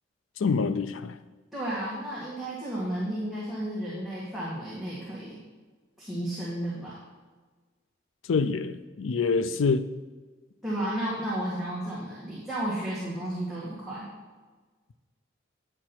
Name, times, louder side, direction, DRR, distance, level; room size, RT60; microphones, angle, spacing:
voice 1, 0.4-1.2 8.3-9.9, left 4 dB, 85° left, 12 dB, 0.4 m, -26 dB
voice 2, 1.5-5.4 6.0-7.0 10.6-14.1, right 1 dB, ahead, -9 dB, 1.7 m, -33 dB
9.6 x 6.6 x 4.4 m, 1.4 s
head